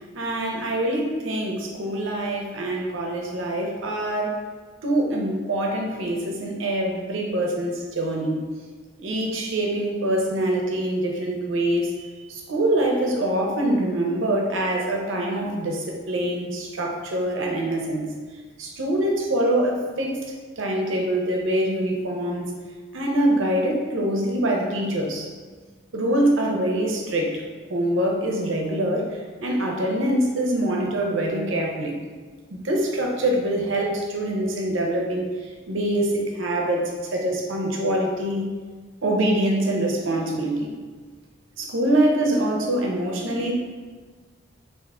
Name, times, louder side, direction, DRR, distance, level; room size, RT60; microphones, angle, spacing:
voice 1, 0.1-4.3 4.8-8.5 9.0-18.1 18.6-20.2 20.6-22.5 22.9-25.3 25.9-27.4 27.7-31.9 32.5-35.3 35.7-38.5 39.0-40.7 41.6-43.5, right 1 dB, 80° right, 1 dB, 0.7 m, -24 dB
3.7 x 2.6 x 3.5 m, 1.5 s
head